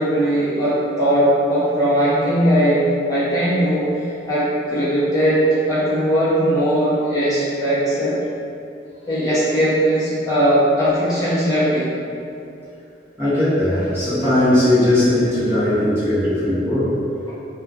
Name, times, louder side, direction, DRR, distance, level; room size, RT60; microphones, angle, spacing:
voice 1, 0.0-3.9 4.3-8.1 9.1-11.9, equal, 20° left, -12 dB, 0.7 m, -19 dB
voice 2, 13.2-17.0, left 1 dB, 15° right, -13 dB, 0.6 m, -18 dB
2.3 x 2.2 x 3.3 m, 2.6 s
head